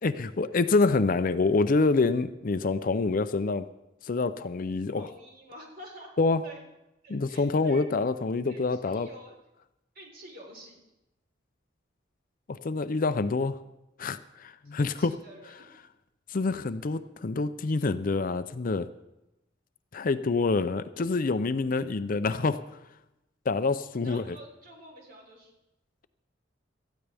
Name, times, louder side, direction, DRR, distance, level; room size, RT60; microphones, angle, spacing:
voice 1, 0.0-3.6 4.0-5.1 6.2-6.4 7.1-9.1 12.5-13.6 14.0-15.1 16.3-18.9 19.9-22.6 23.5-24.4, left 3 dB, 45° left, 12 dB, 0.5 m, -26 dB
voice 2, 4.9-6.1 6.4-6.6 7.0-7.9 8.5-9.4 9.9-10.8 14.6-15.8 24.0-25.5, right 1 dB, 50° right, 0 dB, 3.9 m, -48 dB
18.5 x 14.0 x 3.5 m, 0.93 s
head